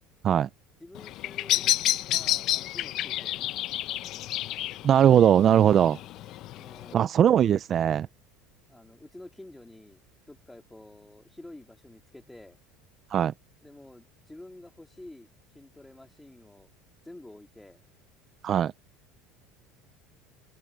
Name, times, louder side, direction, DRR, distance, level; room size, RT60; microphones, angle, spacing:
voice 1, 0.8-1.8 2.0-3.5 6.5-7.1 8.7-10.0 10.3-12.6 13.6-16.7 17.0-17.8, left 1 dB, 5° left, 3.3 m, -49 dB
Bird vocalization bird call bird song, 0.9-6.9, left 14 dB, 55° left, 0.7 m, -30 dB
voice 2, 4.8-6.0 6.9-8.1 13.1-13.3 18.4-18.7, right 9 dB, 40° right, 0.4 m, -20 dB
open air
supercardioid pair, 125°, 0 cm